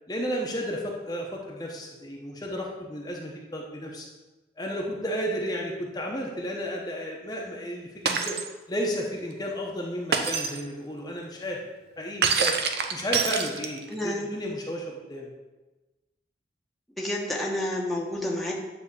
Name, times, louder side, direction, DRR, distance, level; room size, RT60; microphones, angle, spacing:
voice 1, 0.1-4.1 4.6-8.4 8.7-11.6 12.0-12.6 12.9-15.3, equal, 20° left, -2 dB, 1.0 m, -33 dB
Shatter, 8.1-8.5 10.1-10.6 12.2-13.9, right 5 dB, 60° right, 0.8 m, -26 dB
voice 2, 13.9-14.3 17.0-18.5, left 1 dB, ahead, -4 dB, 1.1 m, -29 dB
9.8 x 3.6 x 6.8 m, 1.2 s
head